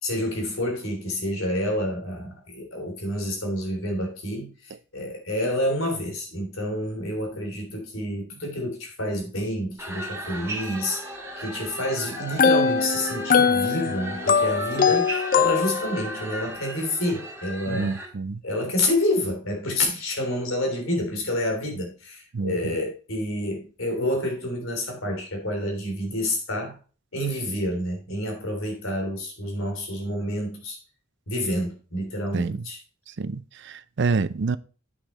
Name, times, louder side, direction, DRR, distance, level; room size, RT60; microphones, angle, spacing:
voice 1, 0.0-18.0 18.4-26.8 27.1-30.8 31.3-32.8, left 1 dB, 85° left, 3.2 m, -28 dB
sound 1, 9.8-18.1, right 1 dB, 15° right, 2.5 m, -36 dB
sound 2, 12.2-16.1, left 6 dB, 40° left, 0.4 m, -22 dB
voice 2, 17.7-18.4 22.3-22.7 32.3-32.6 33.2-34.6, right 4 dB, 60° right, 0.5 m, -27 dB
8.2 x 6.4 x 4.2 m
head